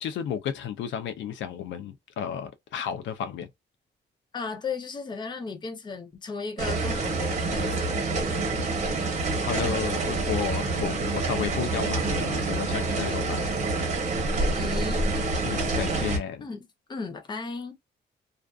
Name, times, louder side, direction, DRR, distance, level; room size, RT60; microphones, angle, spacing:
voice 1, 0.0-3.5 8.5-13.5 15.4-16.5, left 8 dB, 85° left, 0.5 m, -33 dB
voice 2, 4.3-7.9 9.6-9.8 14.3-15.0 16.4-17.7, left 4 dB, 25° left, 0.6 m, -35 dB
sound 1, 6.6-16.2, right 3 dB, 40° right, 0.9 m, -27 dB
2.4 x 2.4 x 2.3 m
cardioid pair, 160°, 19 cm